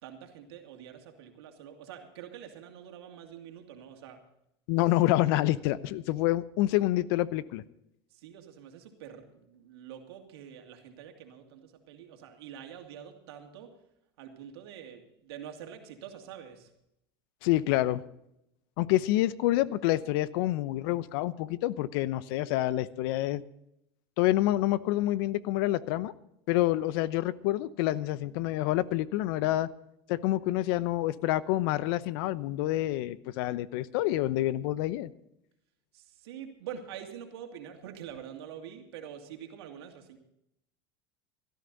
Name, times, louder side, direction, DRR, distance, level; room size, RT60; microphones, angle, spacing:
voice 1, 0.0-4.2 8.1-13.7 14.2-16.7 35.9-40.2, right 9 dB, 80° right, 4 dB, 2.6 m, -46 dB
voice 2, 4.7-7.6 17.4-18.0 18.8-23.4 24.2-26.1 26.5-29.7 30.1-35.1, left 15 dB, 70° left, 17 dB, 0.9 m, -27 dB
17.0 x 13.5 x 4.0 m, 0.80 s
supercardioid pair, 100°, 13 cm